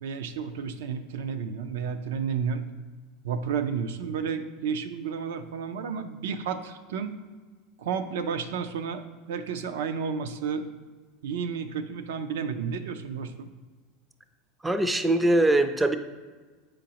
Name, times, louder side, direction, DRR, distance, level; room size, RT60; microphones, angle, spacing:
voice 1, 0.0-2.7 3.2-7.1 7.8-10.7 11.2-13.5, right 6 dB, 85° right, 9 dB, 0.5 m, -31 dB
voice 2, 14.6-16.0, right 1 dB, 10° right, 10 dB, 0.3 m, -22 dB
7.5 x 5.1 x 2.9 m, 1.4 s
supercardioid pair, 145°, 0 cm